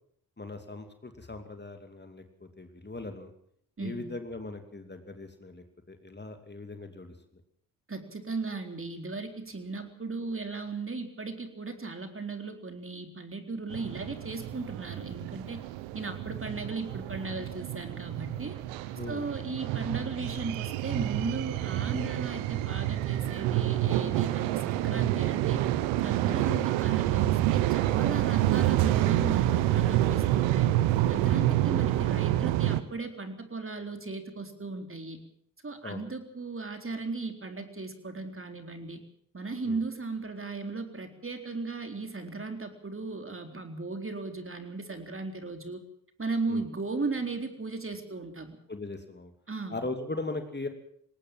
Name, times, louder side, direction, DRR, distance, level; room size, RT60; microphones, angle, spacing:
voice 1, 0.4-3.3 3.8-7.1 18.9-19.3 26.3-26.4 31.4-31.5 35.8-36.0 39.6-39.8 46.5-46.6 48.7-49.3 49.7-50.7, left 2 dB, 20° left, 7 dB, 2.7 m, -39 dB
voice 2, 7.9-15.6 15.9-18.6 19.1-25.7 26.0-30.7 31.1-35.2 35.6-39.0 39.3-45.8 46.2-48.6 49.5-49.8, right 3 dB, 25° right, 6 dB, 4.0 m, -36 dB
sound 1, 13.7-32.8, right 14 dB, 80° right, 1.2 m, -28 dB
20.0 x 18.5 x 7.6 m, 0.66 s
hypercardioid pair, 50°, 46 cm